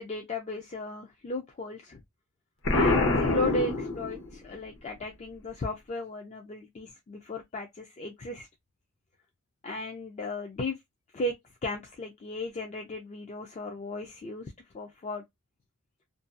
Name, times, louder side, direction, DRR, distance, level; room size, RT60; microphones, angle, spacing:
voice 1, 0.0-2.0 2.7-8.5 9.6-10.8 11.1-11.3 11.6-15.2, left 2 dB, 30° left, 0.3 m, -35 dB
Explosion, 2.6-4.5, left 2 dB, 55° left, 0.7 m, -25 dB
2.5 x 2.2 x 2.4 m
head